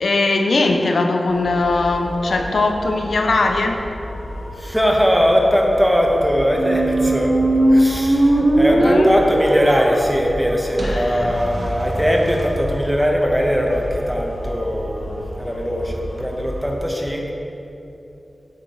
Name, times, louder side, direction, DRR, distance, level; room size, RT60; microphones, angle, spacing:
voice 1, 0.0-3.8 8.3-9.1 10.8-11.3, left 3 dB, 85° left, 4 dB, 0.5 m, -20 dB
sound 1, 1.3-16.7, equal, 65° left, 1.1 m, -32 dB
voice 2, 4.5-7.4 7.7-17.3, equal, 5° right, 0 dB, 1.1 m, -20 dB
sound 2, 6.5-12.4, right 1 dB, 50° right, 0.8 m, -19 dB
9.2 x 7.6 x 3.1 m, 2.9 s
wide cardioid pair, 70°, 0 cm